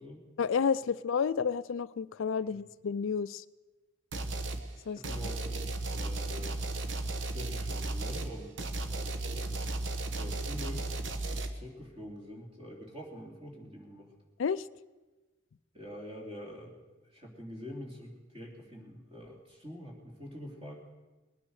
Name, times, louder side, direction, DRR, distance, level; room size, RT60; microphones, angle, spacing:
voice 1, 0.4-3.4 4.9-5.0 14.4-14.7, left 6 dB, 75° left, 17 dB, 0.4 m, -30 dB
sound 1, 4.1-4.6 5.0-11.5, right 2 dB, 65° right, 1.1 m, -35 dB
voice 2, 4.8-6.6 7.2-8.6 8.9-9.8 10.1-10.8 11.3-14.1 15.7-16.8 17.0-20.8, equal, 30° right, 0 dB, 3.0 m, -45 dB
20.0 x 9.6 x 6.5 m, 1.2 s
head